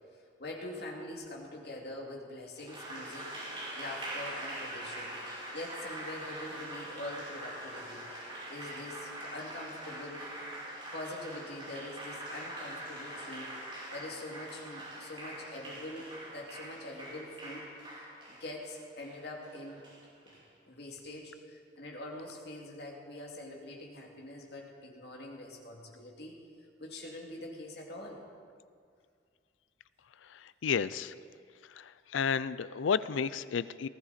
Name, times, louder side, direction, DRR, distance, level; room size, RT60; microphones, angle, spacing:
voice 1, 0.4-5.2 5.5-8.1 8.5-10.3 10.9-13.6 13.9-19.8 20.3-26.4 26.8-28.2, left 1 dB, 55° left, -1 dB, 2.5 m, -44 dB
Applause, 2.6-20.4, right 1 dB, 25° right, 5.1 m, -43 dB
voice 2, 30.6-31.1 31.8-31.9 32.1-33.9, left 6 dB, 80° left, 16 dB, 0.4 m, -31 dB
19.5 x 15.0 x 4.2 m, 2.2 s
head